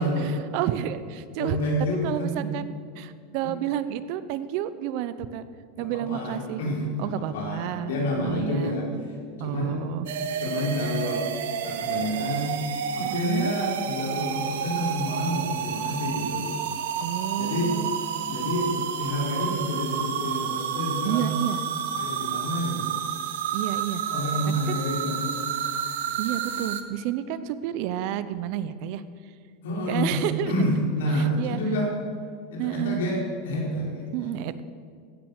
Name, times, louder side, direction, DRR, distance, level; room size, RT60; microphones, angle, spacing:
voice 1, 0.0-1.6 2.0-5.5 5.8-6.6 7.0-8.8 9.4-10.1 13.0-13.5 17.0-17.9 21.0-21.6 23.5-24.0 24.5-24.8 26.2-29.0 29.9-30.5 31.1-31.6 32.6-33.0 34.1-34.6, right 12 dB, 55° right, 13 dB, 0.8 m, -30 dB
voice 2, 1.4-2.5 5.7-8.9 9.4-9.9 10.4-11.3 11.6-12.5 12.9-16.5 17.4-17.7 18.3-21.3 22.0-22.9 24.0-25.4 29.6-30.2 30.4-31.9 32.5-34.1, equal, 90° left, -2 dB, 4.5 m, -28 dB
sound 1, 10.1-26.8, right 8 dB, 85° right, 1.1 m, -30 dB
15.5 x 9.4 x 6.6 m, 2.1 s
supercardioid pair, 145°, 0 cm